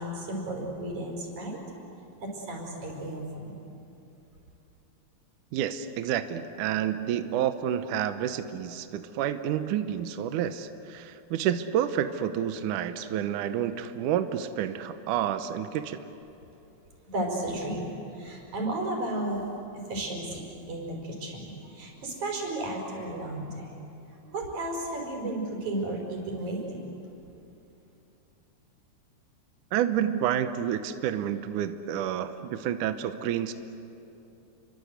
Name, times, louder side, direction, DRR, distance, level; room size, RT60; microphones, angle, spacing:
voice 1, 0.0-1.6 2.2-3.6 17.1-19.4 19.9-23.8 24.2-26.9, right 1 dB, 45° right, 0 dB, 6.2 m, -34 dB
voice 2, 5.5-16.1 29.7-33.5, right 10 dB, 80° right, 9 dB, 1.8 m, -29 dB
29.5 x 24.5 x 8.1 m, 2.8 s
omnidirectional pair, 4.8 m